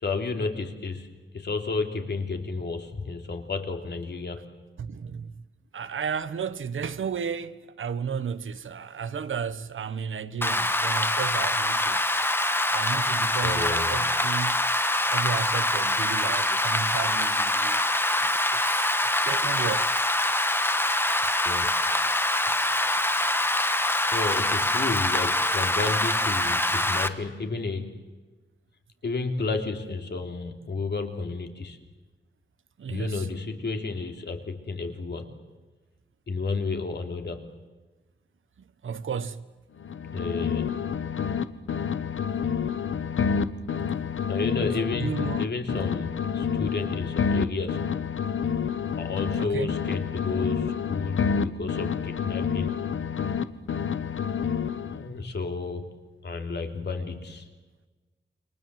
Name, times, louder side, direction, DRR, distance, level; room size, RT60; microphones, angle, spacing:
voice 1, 0.0-1.1 1.3-4.5 13.4-14.0 21.4-21.8 24.1-27.9 29.0-31.8 32.9-35.3 36.3-37.4 40.1-40.7 44.3-47.8 49.0-52.7 54.9-55.9 56.2-57.4, left 3 dB, 60° left, 3.3 m, -31 dB
voice 2, 4.8-5.3 5.7-12.0 12.7-14.6 15.1-17.8 18.2-18.9 19.2-19.9 32.8-33.3 38.8-39.4 44.8-45.5 49.3-49.7, right 6 dB, 90° right, 1.3 m, -33 dB
Rain, 10.4-27.1, left 1 dB, 10° left, 1.3 m, -24 dB
sound 1, 39.8-41.4 41.7-45.4 45.7-49.4 49.7-53.4 53.7-55.1, left 7 dB, 85° left, 1.3 m, -28 dB
29.0 x 25.0 x 7.7 m
wide cardioid pair, 170°, 20 cm